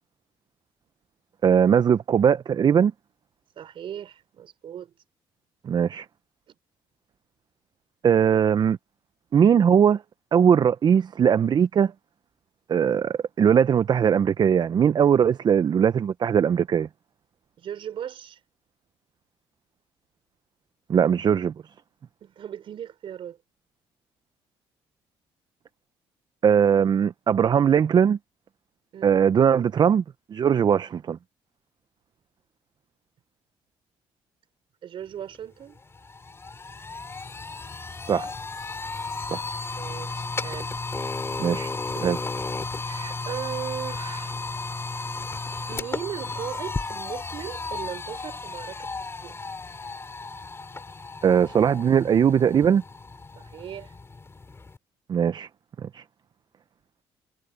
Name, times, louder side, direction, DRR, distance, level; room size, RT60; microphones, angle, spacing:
voice 1, 1.4-2.9 5.6-6.1 8.0-8.8 9.3-10.0 10.3-11.9 12.7-16.9 20.9-21.5 26.4-28.2 29.0-30.0 30.3-31.2 38.1-38.3 39.3-39.4 41.4-41.7 42.0-42.2 51.2-52.8 55.1-55.5 55.8-56.0, right 8 dB, 45° right, 0.7 m, -20 dB
voice 2, 3.6-4.9 6.5-6.6 17.6-18.4 22.2-23.4 28.9-29.2 34.8-35.8 39.6-40.8 42.8-44.4 45.7-48.9 49.2-49.4 53.4-53.9, right 9 dB, 60° right, 5.1 m, -37 dB
sound 1, 35.3-35.4 35.8-54.8, left 3 dB, 25° left, 3.0 m, -34 dB
supercardioid pair, 80°, 10 cm